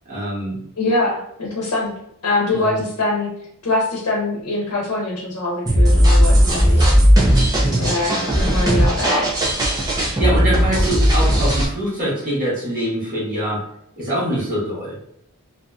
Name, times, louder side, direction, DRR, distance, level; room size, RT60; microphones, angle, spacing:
voice 1, 0.0-0.6 2.5-2.8 7.6-7.9 9.9-13.6 14.0-15.0, right 1 dB, 40° right, -7 dB, 1.3 m, -24 dB
voice 2, 0.8-1.9 2.2-3.3 3.6-7.0 7.8-9.3, left 2 dB, 80° left, -4 dB, 0.8 m, -23 dB
sound 1, 5.7-11.7, equal, 15° right, 0.6 m, -16 dB
2.7 x 2.6 x 2.3 m, 0.72 s
head